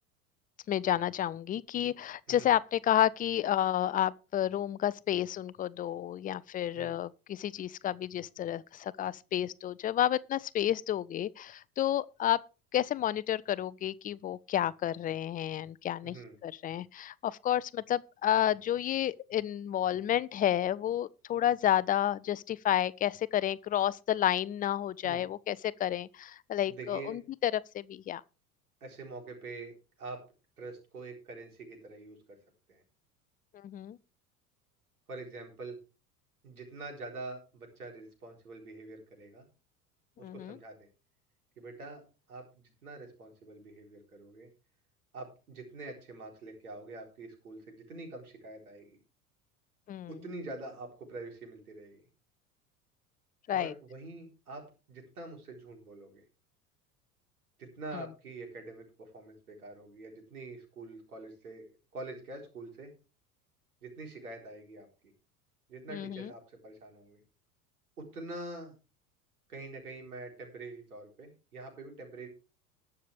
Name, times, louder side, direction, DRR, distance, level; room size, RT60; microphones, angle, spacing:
voice 1, 0.7-12.4 12.7-16.2 16.4-28.2 33.5-34.0 40.2-40.6 49.9-50.1 53.5-53.7 57.9-58.0 65.9-66.3, left 11 dB, 20° left, 0.5 m, -30 dB
voice 2, 16.0-16.4 25.0-25.3 26.7-27.2 28.8-29.7 30.0-30.2 30.6-32.4 32.7-32.8 35.1-35.8 36.4-39.4 40.2-40.9 41.6-42.0 42.3-44.5 45.1-49.0 50.1-52.0 53.5-56.2 57.6-61.7 61.9-62.9 63.8-65.1 65.7-67.2 68.0-68.8 69.5-72.3, right 2 dB, 80° right, 4.3 m, -45 dB
20.5 x 6.8 x 3.4 m
figure-of-eight pair, 75°, 44 cm